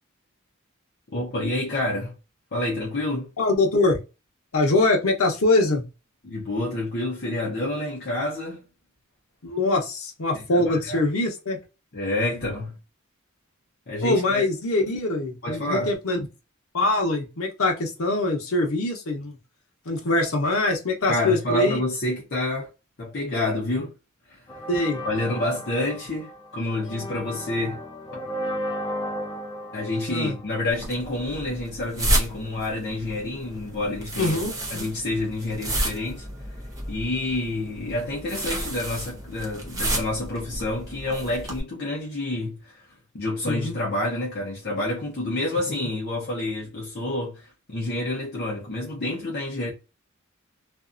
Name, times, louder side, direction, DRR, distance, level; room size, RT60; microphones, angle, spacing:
voice 1, 1.1-2.1 2.5-3.3 6.2-8.7 10.3-11.0 11.9-12.8 13.9-14.4 15.4-15.9 21.1-22.7 23.0-23.9 24.3-24.4 25.0-27.8 29.7-34.4 34.7-36.3 36.9-42.8 43.1-49.7, left 1 dB, 50° left, 0.8 m, -28 dB
voice 2, 3.4-4.0 4.5-5.8 9.4-11.6 14.0-16.3 16.7-19.4 19.8-21.8 24.7-25.0 30.1-30.4 34.1-34.8 43.5-43.8, left 2 dB, 85° left, 0.9 m, -23 dB
sound 1, 24.5-31.2, equal, 20° left, 0.4 m, -35 dB
sound 2, 30.7-41.6, right 1 dB, 15° right, 0.8 m, -31 dB
2.6 x 2.4 x 2.5 m
head